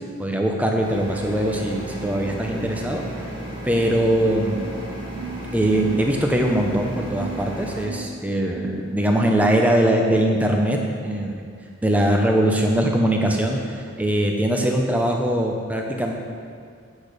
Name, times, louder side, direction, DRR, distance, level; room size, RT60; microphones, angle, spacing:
voice 1, 0.2-3.0 3.6-4.7 5.5-11.4 11.8-16.1, right 1 dB, 5° right, 1 dB, 0.7 m, -21 dB
sound 1, 0.8-7.8, right 1 dB, 25° right, 1.4 m, -34 dB
sound 2, 3.7-9.4, right 4 dB, 90° right, 0.9 m, -39 dB
8.6 x 6.4 x 5.0 m, 2.2 s
head